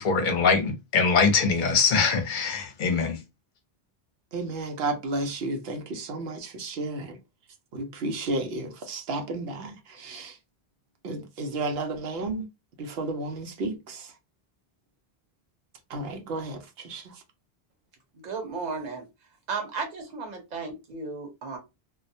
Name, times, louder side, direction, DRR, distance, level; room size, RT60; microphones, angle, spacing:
voice 1, 0.0-3.2, left 5 dB, 55° left, 0.7 m, -23 dB
voice 2, 4.3-7.2 7.7-10.4 11.0-12.5 12.8-14.1 15.9-17.2, right 2 dB, 75° right, 0.8 m, -32 dB
voice 3, 18.2-19.1 19.5-21.6, right 4 dB, 45° right, 0.9 m, -34 dB
2.3 x 2.1 x 2.6 m
omnidirectional pair, 1.0 m